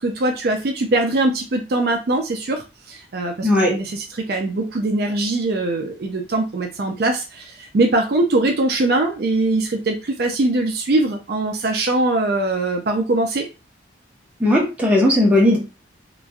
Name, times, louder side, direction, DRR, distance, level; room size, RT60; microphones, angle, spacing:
voice 1, 0.0-13.5, right 2 dB, 55° right, 3 dB, 0.4 m, -22 dB
voice 2, 14.4-15.6, left 1 dB, 10° right, -3 dB, 0.8 m, -16 dB
3.0 x 2.4 x 2.3 m, 0.30 s
head